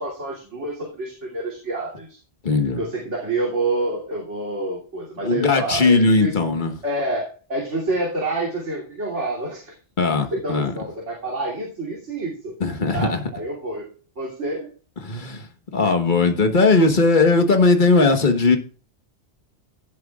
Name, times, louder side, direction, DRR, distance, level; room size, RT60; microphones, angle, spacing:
voice 1, 0.0-2.2 2.8-6.4 6.8-9.7 10.3-12.6 12.9-13.9 14.2-14.7, right 2 dB, 80° right, -3 dB, 3.3 m, -28 dB
voice 2, 2.4-2.8 5.2-6.7 10.0-10.7 12.6-13.2 15.0-15.4 15.7-18.6, left 3 dB, 45° left, 6 dB, 1.5 m, -18 dB
16.5 x 7.9 x 2.4 m, 0.38 s
omnidirectional pair, 1.2 m